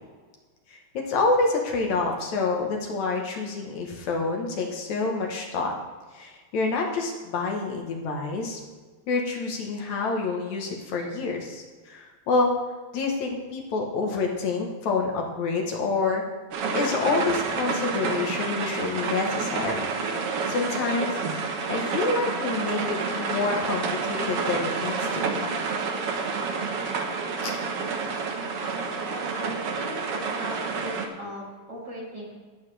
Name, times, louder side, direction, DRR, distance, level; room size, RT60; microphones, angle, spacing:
voice 1, 0.7-5.7 6.1-8.6 9.1-12.5 12.9-16.2 16.7-19.9 20.5-25.5 27.4-27.6, left 3 dB, 70° left, 1 dB, 2.5 m, -28 dB
sound 1, 16.5-31.1, right 4 dB, 60° right, 1.7 m, -29 dB
voice 2, 28.9-30.1 30.4-32.3, right 1 dB, 35° right, -5 dB, 3.3 m, -38 dB
19.0 x 8.2 x 3.3 m, 1.4 s
omnidirectional pair, 3.5 m